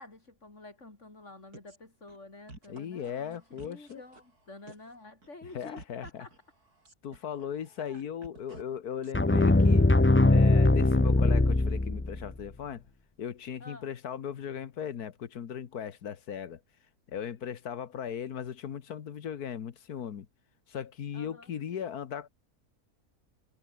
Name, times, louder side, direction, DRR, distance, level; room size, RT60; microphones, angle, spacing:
voice 1, 0.0-6.3 7.1-7.2 7.8-8.0 13.6-13.9 21.1-21.5, left 2 dB, 50° left, 4.9 m, -50 dB
sound 1, 1.5-1.8 2.1-2.2 2.5-4.4 4.7-5.0 5.2-8.6 9.0-9.4, right 2 dB, 80° right, 7.3 m, -51 dB
voice 2, 2.7-4.0 5.5-6.3 7.0-9.9 10.3-12.8 13.2-16.6 17.1-20.3 20.7-22.3, left 8 dB, 80° left, 1.7 m, -38 dB
sound 2, 9.1-12.3, left 2 dB, 20° left, 0.3 m, -21 dB
omnidirectional pair, 1.6 m